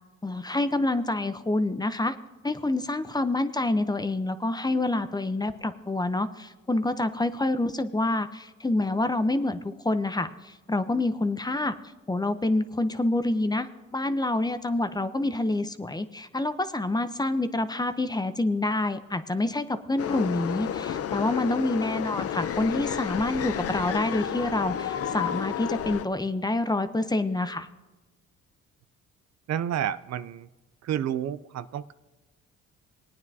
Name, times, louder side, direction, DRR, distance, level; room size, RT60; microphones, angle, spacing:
voice 1, 0.2-2.1 2.4-11.7 12.1-27.7, left 2 dB, 15° left, 11 dB, 0.7 m, -27 dB
sound 1, 20.0-26.1, left 9 dB, 50° left, 0.6 m, -31 dB
voice 2, 29.5-30.5 30.8-31.9, right 10 dB, 60° right, 14 dB, 0.5 m, -30 dB
20.0 x 9.4 x 2.7 m, 1.1 s
cardioid pair, 90°, 30 cm